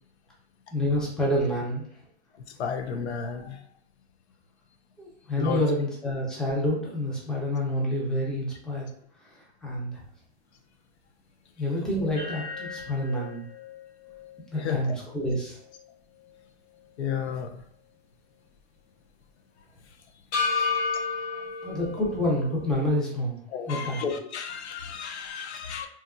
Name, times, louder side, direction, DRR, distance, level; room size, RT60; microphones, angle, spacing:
voice 1, 0.7-1.9 5.0-8.9 9.2-10.0 11.6-13.5 14.5-15.6 21.6-23.4 23.7-24.1, left 1 dB, ahead, -4 dB, 0.5 m, -28 dB
voice 2, 2.5-3.6 5.4-5.6 14.6-15.0 17.0-17.6 23.5-25.9, left 7 dB, 80° left, 6 dB, 0.6 m, -32 dB
sound 1, 12.2-16.4 16.8-16.9 20.3-22.9, left 4 dB, 40° left, 0.9 m, -33 dB
2.9 x 2.3 x 2.2 m, 0.63 s
hypercardioid pair, 125°, 33 cm